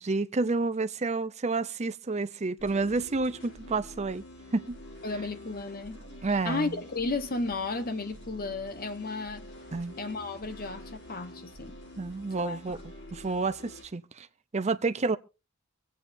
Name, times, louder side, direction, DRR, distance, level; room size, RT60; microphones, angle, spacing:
voice 1, 0.0-4.2 4.5-4.8 6.2-6.8 9.7-9.9 12.0-12.8 13.1-14.3 14.5-15.2, right 3 dB, 30° right, 0.6 m, -29 dB
sound 1, 2.6-13.8, left 1 dB, 60° left, 7.6 m, -47 dB
voice 2, 5.0-6.0 6.3-9.5 10.0-11.8 12.4-12.6, left 3 dB, 45° left, 1.2 m, -33 dB
25.0 x 8.5 x 2.7 m
head